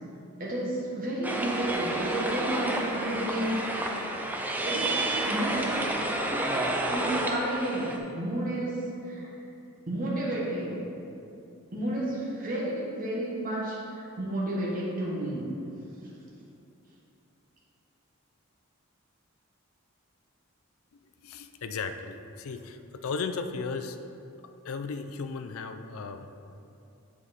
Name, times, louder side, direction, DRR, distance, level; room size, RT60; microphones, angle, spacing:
voice 1, 0.4-4.2 4.6-5.0 5.3-5.9 6.9-8.8 9.0-9.3 9.9-10.8 11.7-15.4, right 1 dB, 40° right, -6 dB, 1.3 m, -31 dB
sound 1, 1.2-8.0, right 1 dB, 10° right, 0.4 m, -30 dB
voice 2, 21.2-24.0 24.6-26.3, left 4 dB, 75° left, 8 dB, 0.4 m, -35 dB
7.4 x 4.7 x 4.2 m, 2.7 s
head